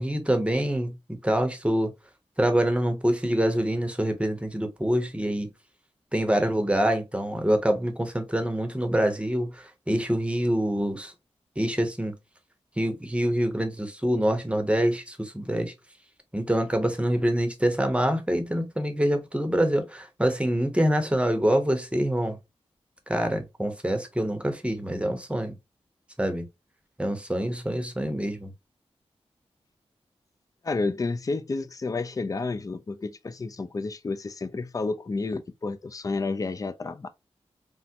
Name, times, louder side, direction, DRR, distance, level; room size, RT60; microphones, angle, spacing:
voice 1, 0.0-1.9 2.4-5.5 6.1-11.1 11.6-12.1 12.8-15.7 16.3-22.4 23.1-25.5 26.2-26.5 27.0-28.5, right 1 dB, 10° right, 0.8 m, -25 dB
voice 2, 30.6-37.1, left 3 dB, 30° left, 0.3 m, -30 dB
3.4 x 2.0 x 2.8 m
cardioid pair, 50°, 11 cm